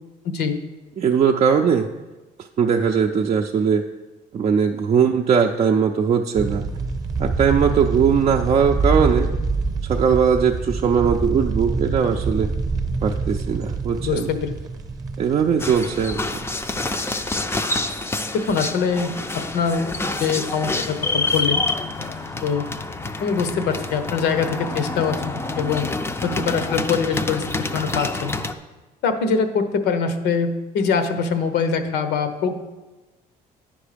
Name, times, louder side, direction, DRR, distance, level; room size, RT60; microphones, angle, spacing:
voice 1, 0.2-0.6 14.0-14.5 18.3-19.9 20.2-21.6 22.4-22.7 23.2-27.4 27.7-28.4 29.0-32.5, left 5 dB, 80° left, 8 dB, 0.9 m, -23 dB
voice 2, 1.0-1.9 2.6-3.8 4.3-6.6 7.2-9.3 9.8-12.5 13.0-14.3 15.2-16.2, right 6 dB, 40° right, 1 dB, 0.5 m, -19 dB
sound 1, 6.3-17.8 18.2-18.3 18.8-19.6 19.9-20.1 20.4-21.7 22.0-22.3, right 4 dB, 20° right, 0.8 m, -26 dB
sound 2, 15.6-28.5, left 3 dB, 15° left, 0.5 m, -27 dB
9.6 x 5.4 x 5.1 m, 1.1 s
cardioid pair, 110°, 17 cm